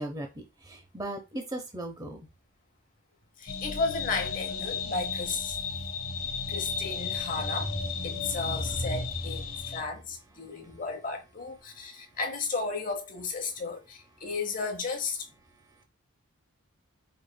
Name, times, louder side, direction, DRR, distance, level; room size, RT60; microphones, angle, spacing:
voice 1, 0.0-2.3 9.5-9.8 10.4-10.8 11.7-12.1 14.2-14.3 15.4-15.8, right 1 dB, 15° right, 0.6 m, -40 dB
voice 2, 3.4-5.6 6.5-15.2, left 3 dB, 40° left, 1.0 m, -34 dB
sound 1, 3.5-9.8, left 5 dB, 85° left, 0.9 m, -34 dB
5.0 x 3.1 x 2.2 m
head